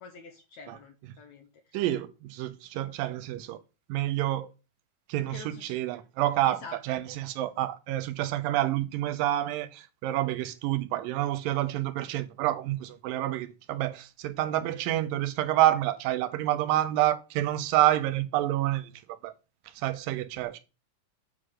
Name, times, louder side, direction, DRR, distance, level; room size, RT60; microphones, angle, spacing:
voice 1, 0.0-1.8 5.3-5.8 6.4-6.8, left 5 dB, 65° left, 2.0 m, -46 dB
voice 2, 1.7-3.6 3.9-4.5 5.1-19.3 19.8-20.6, right 14 dB, 80° right, 2.5 m, -28 dB
7.8 x 3.8 x 6.3 m
omnidirectional pair, 4.0 m